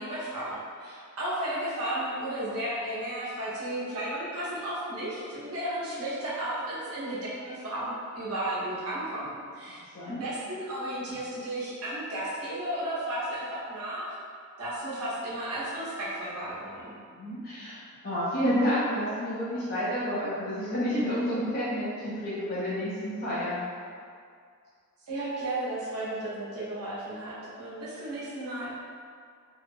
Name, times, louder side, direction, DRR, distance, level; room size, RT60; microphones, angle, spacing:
voice 1, 0.0-9.8 10.2-14.1 14.6-16.9 25.1-28.7, right 1 dB, 80° right, -9 dB, 0.8 m, -34 dB
voice 2, 17.1-17.8 18.0-23.6, equal, 45° left, -10 dB, 0.5 m, -29 dB
2.7 x 2.1 x 2.6 m, 2.2 s
head